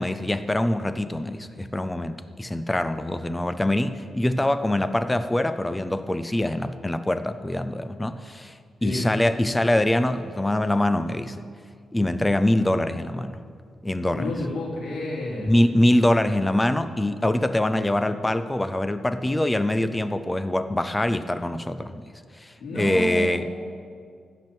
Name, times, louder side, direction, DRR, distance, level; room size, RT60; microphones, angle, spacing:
voice 1, 0.0-8.1 8.8-11.3 11.9-13.3 13.9-14.3 15.4-21.9 22.7-23.5, left 1 dB, 10° left, 11 dB, 0.4 m, -24 dB
voice 2, 14.1-15.6 22.6-23.5, left 1 dB, 80° left, -5 dB, 3.1 m, -30 dB
14.5 x 5.9 x 8.9 m, 2.1 s
wide cardioid pair, 165°, 0 cm